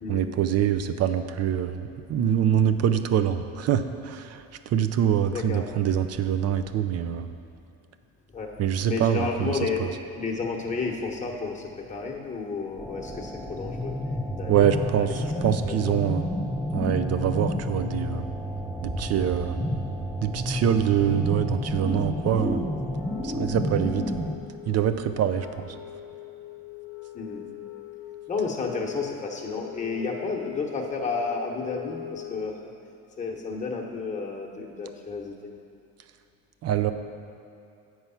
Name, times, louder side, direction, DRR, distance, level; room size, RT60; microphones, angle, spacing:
voice 1, 0.1-4.4 4.7-7.3 8.6-9.9 14.5-16.3 16.7-18.3 18.8-19.6 20.2-22.7 23.2-24.3 24.7-25.7 36.6-36.9, right 9 dB, 45° right, 9 dB, 0.5 m, -25 dB
voice 2, 5.3-5.7 8.3-8.5 8.8-13.9 14.3-15.1 15.7-16.1 27.1-27.4 28.3-32.5 33.2-35.5, left 4 dB, 20° left, -1 dB, 1.1 m, -32 dB
sound 1, 12.8-24.4, left 1 dB, ahead, 0.5 m, -30 dB
Wind instrument woodwind instrument, 22.9-32.7, left 15 dB, 40° left, 0.9 m, -42 dB
7.9 x 4.7 x 5.6 m, 2.7 s
cardioid pair, 95°, 34 cm